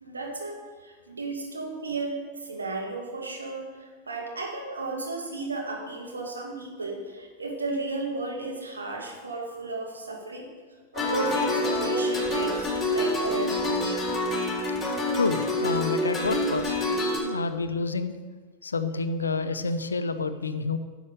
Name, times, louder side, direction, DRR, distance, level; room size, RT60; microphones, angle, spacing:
voice 1, 0.0-10.5 10.9-14.0, right 3 dB, 75° right, 0 dB, 2.1 m, -34 dB
sound 1, 10.9-17.2, left 1 dB, 10° left, 3.7 m, -27 dB
voice 2, 15.1-16.7 17.2-18.1 18.6-20.8, left 4 dB, 75° left, 11 dB, 0.7 m, -28 dB
10.5 x 7.1 x 6.6 m, 1.5 s
figure-of-eight pair, 90°, 0 cm